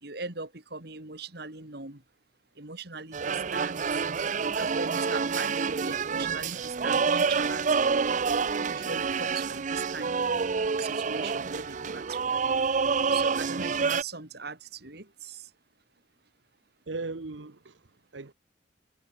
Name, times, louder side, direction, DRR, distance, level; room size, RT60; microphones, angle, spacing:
voice 1, 0.0-2.0 2.6-7.7 8.7-10.3 10.8-12.5 13.1-15.5, right 4 dB, 60° right, 2.9 m, -40 dB
sound 1, 3.1-14.0, right 5 dB, 40° right, 0.5 m, -28 dB
voice 2, 16.9-18.3, right 3 dB, 85° right, 1.0 m, -38 dB
head